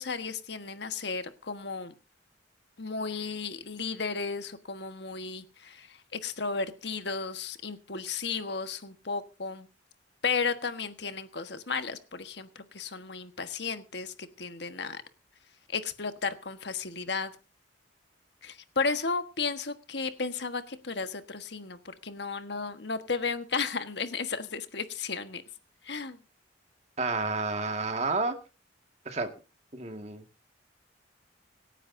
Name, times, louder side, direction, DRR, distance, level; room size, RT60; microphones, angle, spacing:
voice 1, 0.0-1.9 2.8-9.7 10.2-15.0 15.7-17.3 18.4-25.4 25.8-26.2, left 4 dB, 60° left, 9 dB, 1.4 m, -34 dB
voice 2, 27.0-28.4 29.1-29.3 29.7-30.2, right 3 dB, 35° right, 6 dB, 1.9 m, -30 dB
25.5 x 9.9 x 2.7 m, 0.31 s
head